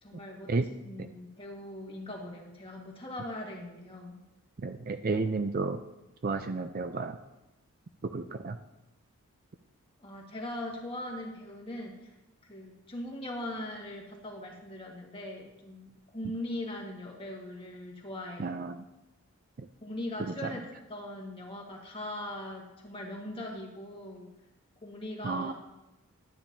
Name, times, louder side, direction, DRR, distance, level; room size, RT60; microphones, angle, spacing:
voice 1, 0.0-4.2 10.0-12.1 12.5-18.6 19.8-24.3 24.8-25.5, left 1 dB, 25° left, -1 dB, 1.7 m, -40 dB
voice 2, 4.6-5.8 6.2-7.2 8.0-8.6 18.4-18.8 19.6-19.7 20.2-20.5 25.2-25.5, right 3 dB, 40° right, 8 dB, 0.4 m, -32 dB
11.5 x 10.0 x 2.7 m, 0.95 s
head